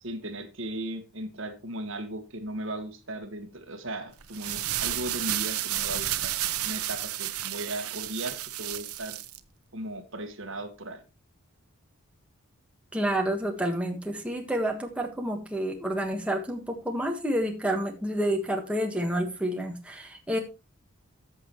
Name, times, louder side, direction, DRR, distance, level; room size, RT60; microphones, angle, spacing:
voice 1, 0.0-6.3 6.6-9.2 9.7-11.0, right 1 dB, 60° right, 1.6 m, -37 dB
sound 1, 4.2-9.4, right 13 dB, 85° right, 0.8 m, -31 dB
voice 2, 12.9-20.4, right 1 dB, 5° right, 1.4 m, -29 dB
14.0 x 7.0 x 3.1 m
head